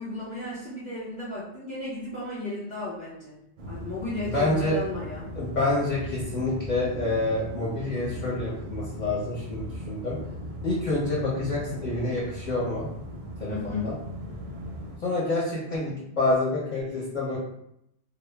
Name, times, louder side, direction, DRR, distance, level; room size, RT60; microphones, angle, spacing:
voice 1, 0.0-3.4 3.6-5.3 13.5-13.9, left 2 dB, 10° left, -8 dB, 0.4 m, -34 dB
sound 1, 3.6-15.0, equal, 60° right, 0.6 m, -38 dB
voice 2, 4.3-4.8 5.3-10.2 10.6-12.9 13.4-14.0 15.0-17.4, left 2 dB, 45° left, -7 dB, 0.8 m, -27 dB
2.1 x 2.0 x 3.2 m, 0.77 s
omnidirectional pair, 1.1 m